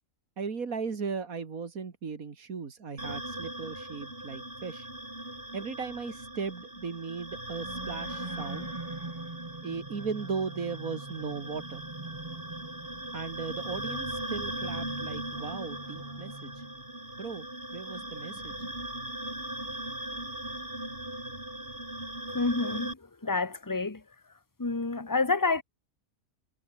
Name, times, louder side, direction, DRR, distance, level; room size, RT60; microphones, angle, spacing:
voice 1, 0.4-4.9 5.5-8.7 9.6-11.8 13.1-16.6 17.2-17.5 17.7-18.7, right 5 dB, 80° right, 2.6 m, -37 dB
sound 1, 3.0-22.9, right 1 dB, 40° right, 7.8 m, -39 dB
sound 2, 7.6-16.9, right 2 dB, 20° right, 1.5 m, -44 dB
voice 2, 22.3-24.0 24.6-25.6, left 3 dB, 15° left, 1.3 m, -29 dB
omnidirectional pair, 1.4 m